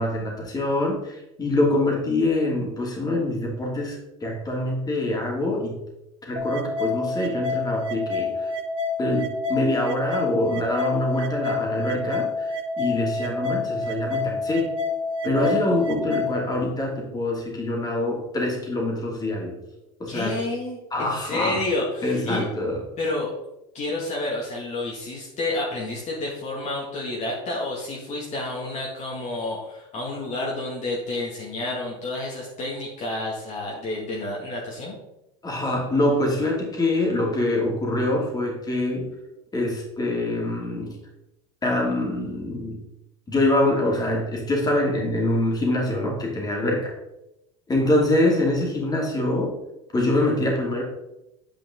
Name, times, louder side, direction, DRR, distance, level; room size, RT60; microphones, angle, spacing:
voice 1, 0.0-5.8 6.3-8.5 9.0-14.8 15.2-19.6 20.0-20.4 20.9-21.6 22.0-22.8 35.4-39.1 39.5-41.0 41.6-42.8 43.3-46.9 47.7-49.5 49.9-50.8, left 1 dB, 20° left, -1 dB, 2.7 m, -24 dB
sound 1, 6.4-16.4, left 3 dB, 35° right, 1.8 m, -28 dB
voice 2, 20.1-22.5 23.0-23.3 23.7-35.0, left 2 dB, 45° left, -3 dB, 2.1 m, -30 dB
8.9 x 5.1 x 3.9 m, 0.89 s
supercardioid pair, 100°, 17 cm